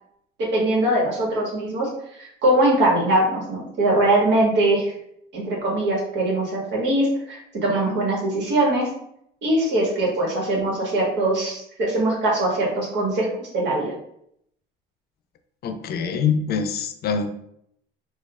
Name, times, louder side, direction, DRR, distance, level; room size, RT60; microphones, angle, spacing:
voice 1, 0.4-1.9 2.2-4.9 5.3-8.9 9.4-13.9, right 1 dB, 60° right, -2 dB, 1.5 m, -22 dB
voice 2, 15.6-17.3, left 6 dB, 50° left, 8 dB, 0.5 m, -24 dB
4.3 x 2.4 x 2.4 m, 0.73 s
cardioid pair, 105°, 20 cm